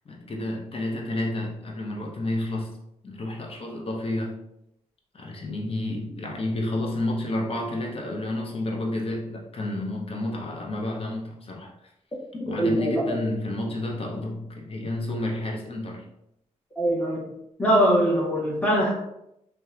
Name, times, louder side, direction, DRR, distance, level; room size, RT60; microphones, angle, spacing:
voice 1, 0.1-2.7 3.0-4.4 5.1-11.7 12.5-16.0, left 1 dB, 45° left, -1 dB, 0.7 m, -30 dB
voice 2, 12.5-13.2 16.8-17.2 17.6-18.9, equal, 10° left, -5 dB, 1.0 m, -22 dB
2.7 x 2.2 x 2.4 m, 0.80 s
cardioid pair, 60°, 14 cm